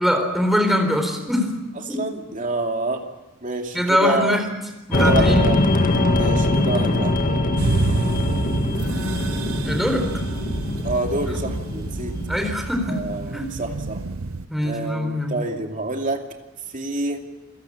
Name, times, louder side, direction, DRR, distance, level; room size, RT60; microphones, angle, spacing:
voice 1, 0.0-1.5 1.9-2.0 3.7-4.5 4.9-5.5 9.6-10.1 11.3-11.4 12.3-13.1 13.3-13.5 14.5-15.4, equal, ahead, 4 dB, 4.1 m, -22 dB
voice 2, 1.8-3.0 3.4-4.4 4.9-5.6 6.1-7.1 10.8-12.1 12.9-14.0 14.6-16.2 16.7-17.2, right 2 dB, 40° right, 3 dB, 2.5 m, -27 dB
sound 1, 4.9-12.5, left 2 dB, 40° left, 2.1 m, -22 dB
sound 2, 7.6-14.5, right 3 dB, 85° right, 0.9 m, -28 dB
28.5 x 16.5 x 8.8 m, 1.1 s
head